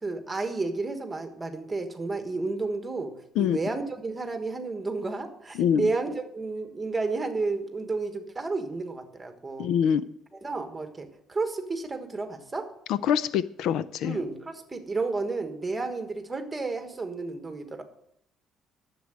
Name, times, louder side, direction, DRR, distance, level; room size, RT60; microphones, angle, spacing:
voice 1, 0.0-3.1 3.4-9.7 10.4-12.7 14.0-17.8, right 3 dB, 10° right, 6 dB, 1.4 m, -31 dB
voice 2, 5.5-5.9 9.6-10.0 12.9-14.2, left 8 dB, 70° left, 16 dB, 0.5 m, -25 dB
11.5 x 7.5 x 7.6 m, 0.75 s
cardioid pair, 175°, 0 cm